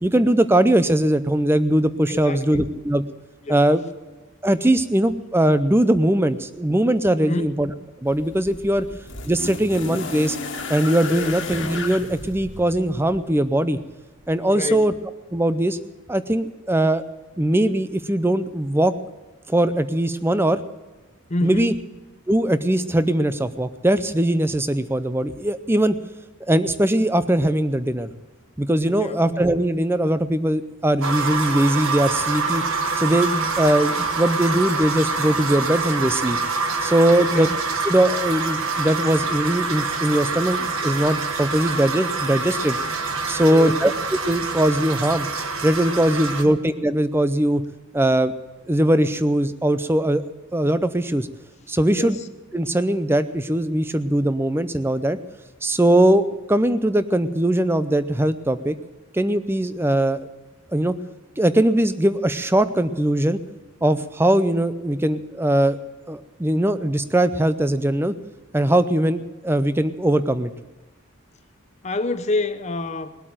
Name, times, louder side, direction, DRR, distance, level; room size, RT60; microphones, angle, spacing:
voice 1, 0.0-3.0 3.5-3.8 4.4-7.7 8.0-8.9 9.3-10.4 10.7-13.8 14.3-14.9 15.3-15.8 16.1-17.0 17.4-18.9 19.5-20.6 21.4-21.7 22.3-26.0 26.5-28.1 28.6-32.6 33.0-36.4 36.8-37.5 37.9-42.8 43.3-43.9 44.3-45.3 45.6-47.6 47.9-48.3 48.7-50.2 50.5-51.3 51.7-52.2 52.5-55.2 55.6-58.7 59.1-60.2 60.7-60.9 61.4-63.4 63.8-65.8 66.1-68.1 68.5-70.5, right 1 dB, 10° right, 0.5 m, -20 dB
voice 2, 2.1-2.7 3.5-3.6 7.2-7.5 11.1-11.4 14.5-14.9 21.3-21.8 28.9-29.2 37.1-37.6 43.5-44.0 46.4-46.6 51.9-52.3 71.8-73.2, left 2 dB, 30° left, 0.7 m, -28 dB
sound 1, 8.1-13.3 14.3-14.4, left 3 dB, 60° left, 1.7 m, -33 dB
sound 2, 31.0-46.4, right 4 dB, 80° right, 1.4 m, -26 dB
20.0 x 8.3 x 7.7 m
head